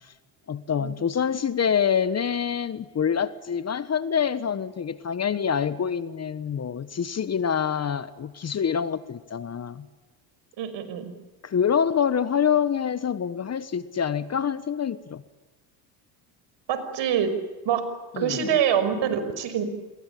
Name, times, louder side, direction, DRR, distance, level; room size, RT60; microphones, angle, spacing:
voice 1, 0.5-9.8 11.4-15.2 18.1-18.5, left 7 dB, 30° left, 15 dB, 1.3 m, -26 dB
voice 2, 10.6-11.1 16.7-17.3 17.6-17.8 18.2-19.6, right 8 dB, 60° right, 10 dB, 5.9 m, -25 dB
28.5 x 22.5 x 8.6 m, 1.3 s
supercardioid pair, 85°, 50 cm